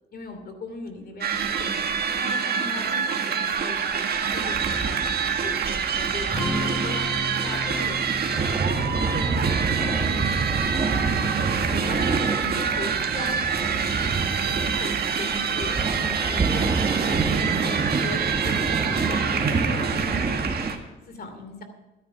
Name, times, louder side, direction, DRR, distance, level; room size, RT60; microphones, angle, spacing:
voice 1, 0.1-1.7 2.1-7.0 7.4-12.0 12.4-20.4 21.1-21.6, left 2 dB, 50° left, 7 dB, 2.7 m, -39 dB
sound 1, 1.2-20.8, right 6 dB, 55° right, 1.6 m, -26 dB
sound 2, 4.2-20.7, right 4 dB, 30° right, 1.8 m, -28 dB
Strum, 6.3-12.5, equal, 5° left, 5.2 m, -35 dB
12.5 x 11.0 x 5.9 m, 1.1 s
cardioid pair, 90°, 20 cm